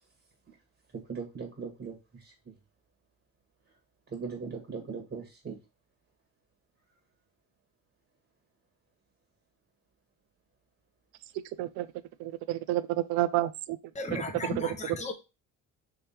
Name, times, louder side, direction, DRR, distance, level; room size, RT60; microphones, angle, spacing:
voice 1, 0.9-2.5 4.1-5.6, right 5 dB, 35° right, 1.6 m, -39 dB
voice 2, 12.2-13.8 14.1-14.2 14.6-14.7, right 15 dB, 75° right, 0.5 m, -30 dB
voice 3, 13.9-15.1, left 3 dB, 20° left, 0.9 m, -35 dB
3.6 x 3.2 x 4.3 m
supercardioid pair, 75°, 36 cm